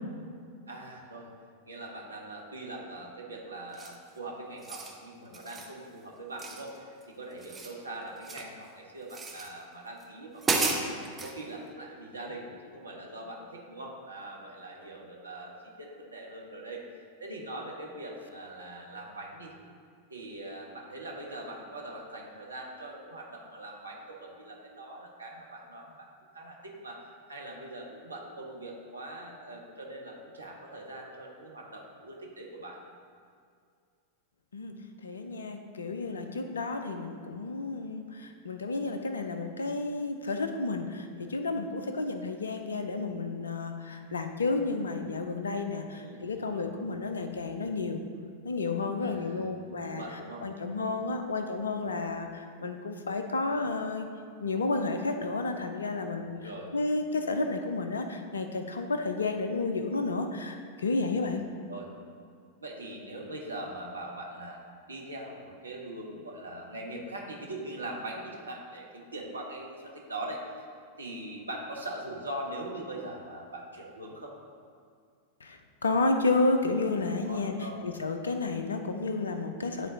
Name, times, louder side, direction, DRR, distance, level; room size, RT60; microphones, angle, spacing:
voice 1, 0.7-1.3 1.7-10.9 11.2-19.5 20.1-26.1 26.3-27.0 27.3-32.8 45.9-46.7 49.0-49.4 49.8-50.4 56.2-56.7 61.2-61.4 61.7-61.9 62.6-64.6 64.9-70.4 71.0-74.3 77.2-77.8, right 1 dB, 80° right, -1 dB, 1.0 m, -42 dB
sound 1, 3.7-4.1 4.5-5.0 5.3-5.7 6.4-7.0 7.3-8.5 9.1-9.5 10.0-10.1 10.4-11.3, right 3 dB, 20° right, 0.8 m, -33 dB
voice 2, 35.0-48.0 48.4-50.0 50.4-54.1 54.4-56.4 56.7-61.4 75.4-79.9, left 3 dB, 70° left, 6 dB, 0.5 m, -31 dB
11.0 x 3.8 x 2.8 m, 2.3 s
figure-of-eight pair, 90°, 0 cm